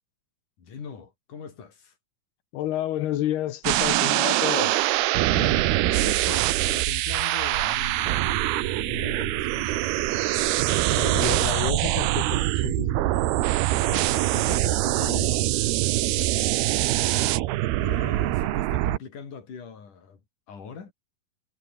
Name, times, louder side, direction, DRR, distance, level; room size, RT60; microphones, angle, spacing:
voice 1, 0.6-1.9 5.3-10.0 13.8-17.3 17.8-20.2 20.5-20.9, left 6 dB, 55° left, 5.7 m, -41 dB
voice 2, 2.5-4.8 10.9-13.3, left 13 dB, 90° left, 3.5 m, -30 dB
sound 1, 3.6-19.0, right 16 dB, 80° right, 2.9 m, -24 dB
omnidirectional pair, 4.5 m